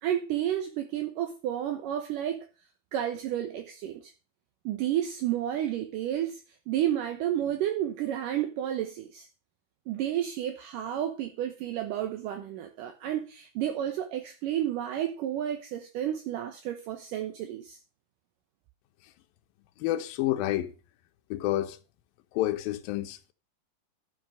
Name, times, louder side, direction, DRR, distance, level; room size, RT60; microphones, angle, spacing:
voice 1, 0.0-2.5 2.9-4.1 4.7-6.4 6.7-9.3 9.9-17.8, right 11 dB, 70° right, 2.5 m, -31 dB
voice 2, 19.8-20.7 21.3-21.8 22.3-23.3, left 14 dB, 80° left, 2.6 m, -29 dB
12.5 x 6.3 x 6.5 m
omnidirectional pair, 4.1 m